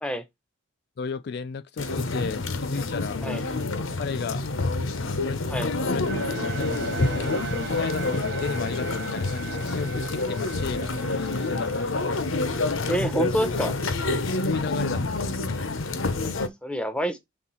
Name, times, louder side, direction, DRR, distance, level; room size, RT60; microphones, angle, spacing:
voice 1, 1.0-3.2 4.0-4.4 5.0-5.5 5.9-6.1 6.6-6.7 7.1-7.4 7.7-12.1 14.4-15.7, left 5 dB, 50° left, 0.3 m, -34 dB
sound 1, 1.8-16.5, left 3 dB, 75° left, 0.9 m, -28 dB
sound 2, 6.1-13.3, right 5 dB, 50° right, 0.5 m, -38 dB
voice 2, 12.9-13.7 16.3-17.2, equal, 5° left, 0.7 m, -28 dB
6.1 x 3.5 x 5.5 m
head